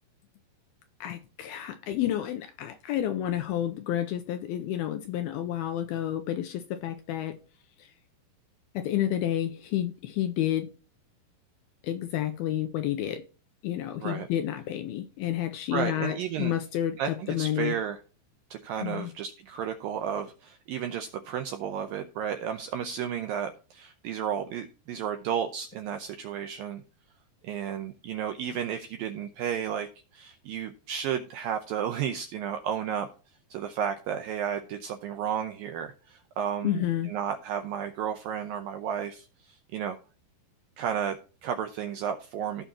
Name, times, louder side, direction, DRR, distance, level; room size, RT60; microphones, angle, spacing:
voice 1, 1.0-7.4 7.8-7.9 8.7-10.7 11.8-13.2 13.6-17.8 18.8-19.1 36.6-37.1, left 12 dB, 85° left, 2.3 m, -30 dB
voice 2, 15.7-16.5 17.0-18.0 18.5-26.8 27.4-29.9 30.1-33.1 33.5-40.0 40.8-42.6, right 8 dB, 80° right, 2.0 m, -33 dB
16.0 x 5.6 x 2.9 m
omnidirectional pair, 5.0 m